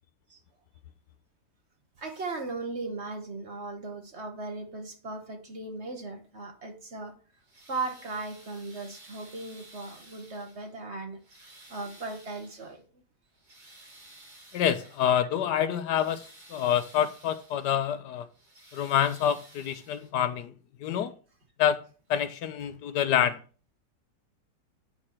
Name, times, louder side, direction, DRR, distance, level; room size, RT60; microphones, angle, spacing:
voice 1, 2.0-7.1 7.7-11.2 11.7-12.9, right 3 dB, 40° right, 1.3 m, -37 dB
sound 1, 7.3-10.8 11.2-12.8 13.3-15.2 15.7-17.7 18.2-20.3 21.4-21.5 22.1-22.2, right 2 dB, 90° right, 4.3 m, -54 dB
voice 2, 14.5-16.2 16.5-18.3 18.7-20.5 20.8-21.1 21.6-21.8 22.1-23.4, left 9 dB, 75° left, 1.2 m, -27 dB
8.8 x 4.3 x 6.3 m
omnidirectional pair, 1.9 m